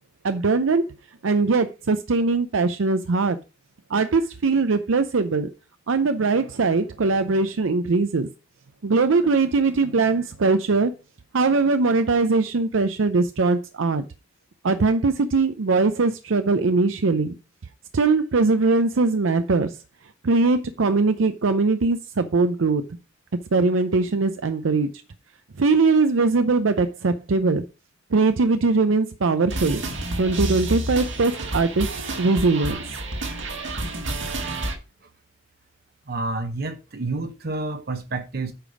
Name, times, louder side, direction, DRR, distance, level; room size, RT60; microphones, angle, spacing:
voice 1, 0.2-0.9 1.2-3.4 3.9-5.5 5.9-8.3 8.8-10.9 11.3-14.0 14.6-17.4 17.9-19.8 20.2-22.8 23.5-24.9 25.6-27.6 28.1-29.8 30.2-31.9 32.2-32.8, right 3 dB, 90° right, 0.6 m, -21 dB
sound 1, 29.5-34.7, right 1 dB, 70° right, 1.9 m, -29 dB
voice 2, 36.1-38.5, right 2 dB, 55° right, 0.8 m, -29 dB
8.9 x 5.1 x 4.9 m
head